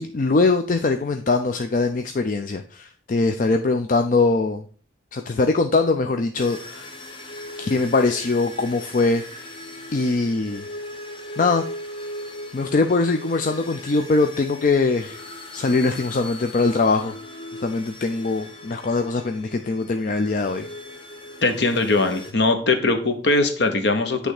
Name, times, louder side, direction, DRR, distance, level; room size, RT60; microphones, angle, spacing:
voice 1, 0.0-4.6 5.1-6.9 7.6-9.6 9.9-10.6 11.4-11.6 12.5-15.3 15.5-17.2 17.6-20.7, left 3 dB, 40° left, 6 dB, 0.4 m, -22 dB
sound 1, 6.4-22.3, left 1 dB, 25° left, 0.8 m, -39 dB
voice 2, 21.4-24.3, left 3 dB, 60° left, 6 dB, 1.0 m, -21 dB
8.7 x 3.4 x 4.8 m, 0.43 s
head